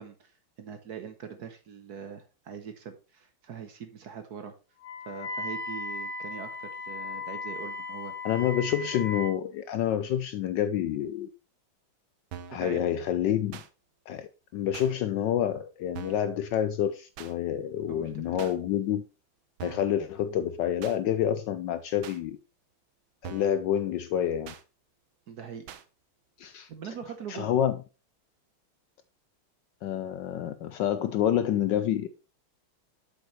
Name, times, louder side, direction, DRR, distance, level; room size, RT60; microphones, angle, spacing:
voice 1, 0.0-4.5 5.0-8.1 12.6-12.8 17.9-18.5 25.3-25.7 26.7-27.5, right 7 dB, 60° right, 1.2 m, -42 dB
Wind instrument woodwind instrument, 4.8-9.4, left 3 dB, 55° left, 2.6 m, -37 dB
voice 2, 8.2-11.3 12.5-13.6 14.1-19.0 19.6-22.4 23.2-24.5 26.4-26.7 27.3-27.7 29.8-32.1, left 10 dB, 75° left, 1.1 m, -28 dB
sound 1, 12.3-12.7 13.5-13.7 14.7-14.9 15.9-16.3 17.2-17.3 18.4-18.6 19.6-20.0 20.8-21.0 22.0-22.2 23.2-23.6 24.5-24.6 25.7-25.8, right 9 dB, 75° right, 1.5 m, -42 dB
7.9 x 6.9 x 3.1 m
omnidirectional pair, 2.3 m